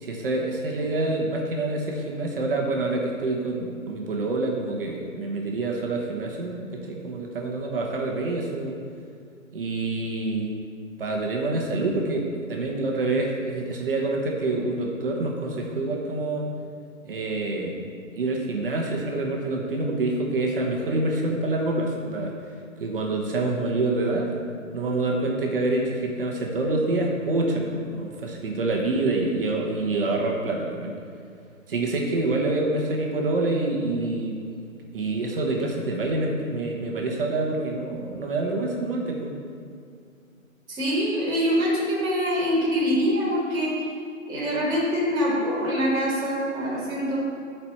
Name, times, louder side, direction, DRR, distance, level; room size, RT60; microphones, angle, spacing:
voice 1, 0.0-8.8 9.5-10.5 11.0-16.5 17.0-17.8 18.2-22.3 22.8-24.3 24.7-30.9 31.7-34.4 34.9-39.3, right 2 dB, 40° right, 0 dB, 1.0 m, -26 dB
voice 2, 40.7-43.9 44.3-47.2, equal, 10° right, -10 dB, 2.1 m, -24 dB
13.0 x 4.5 x 4.3 m, 2.3 s
hypercardioid pair, 160°, 41 cm